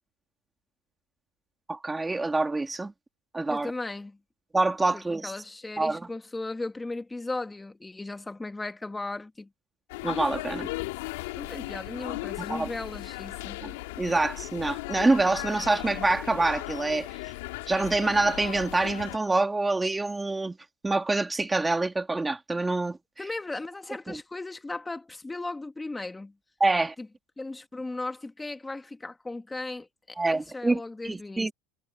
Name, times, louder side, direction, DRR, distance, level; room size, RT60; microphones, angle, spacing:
voice 1, 1.7-2.9 3.3-3.7 4.5-5.3 5.8-6.1 10.0-10.7 12.5-12.7 13.6-17.1 17.7-20.6 20.8-23.0 24.1-24.2 26.6-26.9 30.2-31.5, right 2 dB, 10° right, 2.0 m, -26 dB
voice 2, 3.5-4.2 4.9-9.5 11.4-13.6 23.2-26.3 27.0-27.1 27.4-31.5, left 2 dB, 10° left, 1.9 m, -37 dB
sound 1, 9.9-19.2, left 22 dB, 85° left, 3.1 m, -37 dB
supercardioid pair, 130°, 0 cm